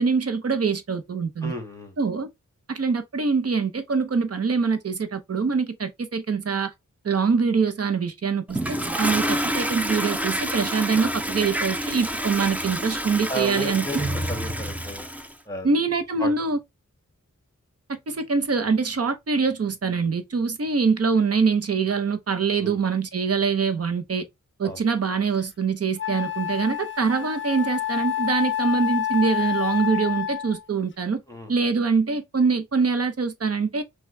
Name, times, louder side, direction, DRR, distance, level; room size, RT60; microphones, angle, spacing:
voice 1, 0.0-1.5 2.0-2.3 2.7-6.7 7.0-13.9 15.6-16.6 17.9-24.3 24.6-31.2 31.5-33.8, right 5 dB, 55° right, 0.8 m, -24 dB
voice 2, 1.4-1.9 13.3-15.1 15.5-15.7 16.2-16.3 22.6-22.8 24.6-24.8 31.3-31.5, equal, 10° left, 1.5 m, -33 dB
Toilet flush, 8.5-15.3, equal, 5° right, 0.5 m, -28 dB
Wind instrument woodwind instrument, 25.3-25.4 26.0-30.6, left 11 dB, 40° left, 0.5 m, -28 dB
5.9 x 2.3 x 3.2 m
wide cardioid pair, 105°, 29 cm